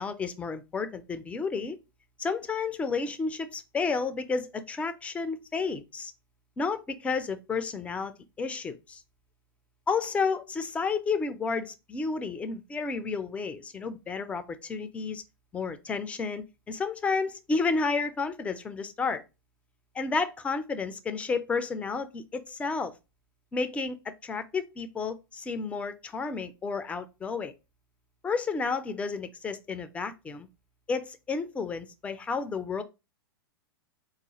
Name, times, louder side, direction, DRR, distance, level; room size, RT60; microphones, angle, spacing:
voice 1, 0.0-1.8 2.2-6.1 6.6-9.0 9.9-15.2 15.5-19.2 19.9-22.9 23.5-27.5 28.2-30.5 30.9-32.8, left 4 dB, 10° left, 0.3 m, -31 dB
3.7 x 2.4 x 2.8 m
figure-of-eight pair, 100°, 12 cm